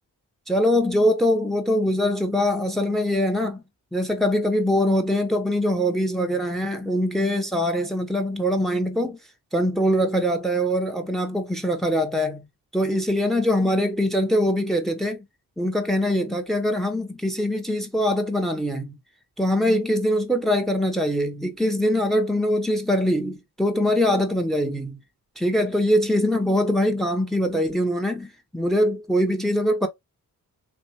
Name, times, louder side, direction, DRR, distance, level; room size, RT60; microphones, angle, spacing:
voice 1, 0.5-3.6 3.9-9.2 9.5-12.4 12.7-15.2 15.6-19.0 19.4-25.0 25.4-29.9, equal, ahead, 1.0 m, -23 dB
3.3 x 2.6 x 2.8 m
supercardioid pair, 40°, 41 cm